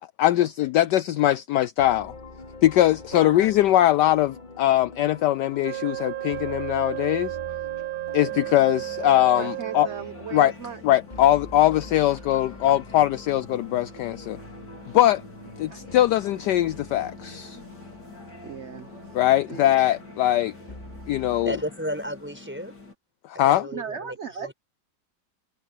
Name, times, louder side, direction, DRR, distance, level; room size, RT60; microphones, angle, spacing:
voice 1, 0.2-2.1 2.6-7.4 8.1-9.9 10.3-10.5 10.8-14.4 14.9-15.2 15.6-17.6 19.1-20.5 21.1-21.6 23.2-23.7, left 13 dB, 70° left, 1.1 m, -21 dB
sound 1, 1.8-21.7, left 1 dB, 20° left, 3.7 m, -45 dB
Wind instrument woodwind instrument, 5.6-10.2, right 18 dB, 80° right, 1.7 m, -33 dB
sound 2, 8.3-22.9, left 3 dB, 55° left, 5.5 m, -46 dB
voice 2, 9.3-10.8 15.7-15.9 18.4-18.9 19.5-19.7 23.7-24.5, right 7 dB, 40° right, 1.2 m, -37 dB
voice 3, 21.4-22.7 23.4-24.5, equal, 5° right, 6.5 m, -33 dB
omnidirectional pair, 2.1 m